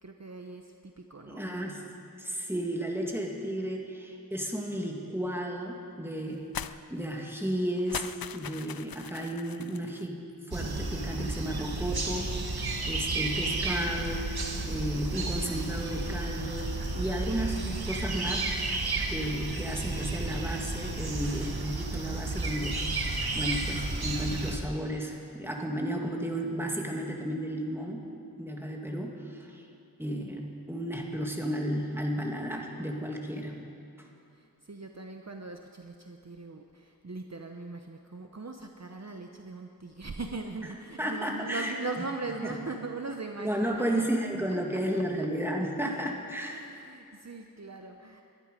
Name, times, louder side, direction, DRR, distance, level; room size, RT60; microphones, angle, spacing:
voice 1, 0.0-1.4 12.8-13.7 34.3-44.0 44.7-45.3 46.4-48.2, right 3 dB, 45° right, 4 dB, 0.8 m, -40 dB
voice 2, 1.3-1.9 2.2-6.5 6.9-10.2 10.5-18.5 19.1-28.0 28.4-29.6 30.0-33.6 34.0-34.1 41.0-41.7 43.4-46.6, equal, 5° right, 0 dB, 2.1 m, -33 dB
sound 1, 6.5-6.8 7.1-7.2 7.8-10.1, left 8 dB, 75° left, 0.5 m, -40 dB
sound 2, 10.5-24.6, right 3 dB, 85° right, 1.3 m, -32 dB
20.5 x 11.5 x 5.2 m, 2.5 s
wide cardioid pair, 45°, 36 cm